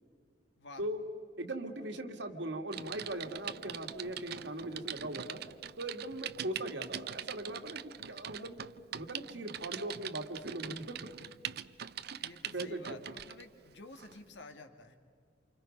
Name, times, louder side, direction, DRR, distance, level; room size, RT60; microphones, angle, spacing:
voice 1, 1.4-5.4 5.8-8.6 8.9-11.0 12.5-13.0, right 1 dB, 75° right, 4 dB, 2.2 m, -39 dB
Typing, 2.7-13.4 14.0-14.2, right 10 dB, 60° right, 0.6 m, -43 dB
voice 2, 12.2-15.0, left 2 dB, 75° left, 6 dB, 2.1 m, -51 dB
29.0 x 28.0 x 5.4 m, 2.2 s
head